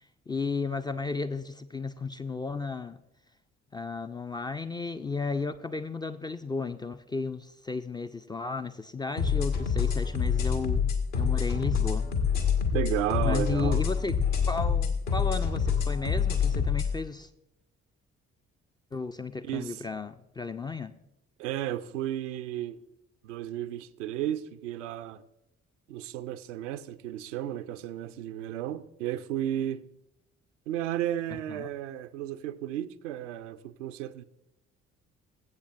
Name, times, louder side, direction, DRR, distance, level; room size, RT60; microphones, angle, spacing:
voice 1, 0.3-3.0 3.7-12.1 13.2-14.2 14.4-17.3 18.9-20.9 31.5-31.7, left 4 dB, 15° left, 0.3 m, -34 dB
sound 1, 9.2-16.9, left 6 dB, 75° left, 1.3 m, -26 dB
voice 2, 12.7-13.8 19.4-19.8 21.4-22.8 23.2-25.2 25.9-29.8 30.7-34.2, right 11 dB, 75° right, 0.5 m, -33 dB
20.0 x 8.2 x 2.4 m
figure-of-eight pair, 40°, 38 cm